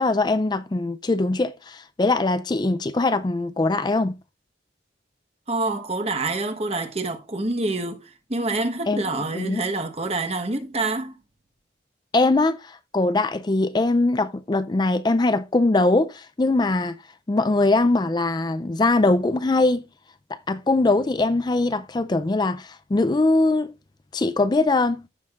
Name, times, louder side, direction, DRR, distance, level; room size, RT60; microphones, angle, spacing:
voice 1, 0.0-4.1 8.9-9.0 9.3-9.6 12.1-17.0 17.3-19.8 20.3-23.7 24.1-25.0, left 2 dB, 25° left, 0.4 m, -21 dB
voice 2, 5.5-8.0 8.3-11.1, right 2 dB, 35° right, 1.1 m, -26 dB
15.0 x 6.3 x 2.4 m
head